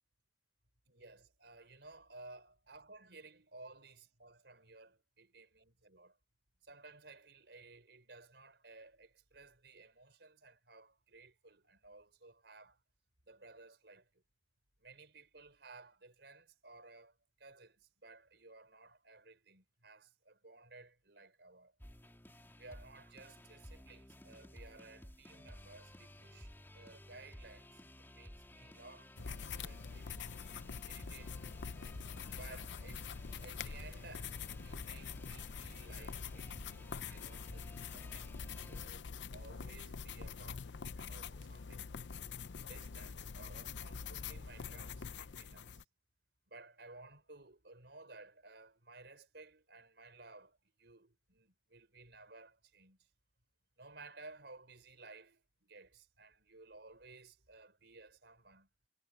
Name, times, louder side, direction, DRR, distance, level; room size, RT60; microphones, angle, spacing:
voice 1, 0.9-6.2 6.6-12.8 13.3-14.2 14.8-21.7 22.6-30.1 30.8-31.6 32.2-33.0 33.4-41.9 42.6-45.8 46.5-53.0 53.8-58.7, right 3 dB, 70° right, 4.8 m, -57 dB
sound 1, 21.8-38.9, left 1 dB, 15° left, 2.9 m, -55 dB
sound 2, 29.2-45.8, left 6 dB, 80° left, 0.6 m, -45 dB
head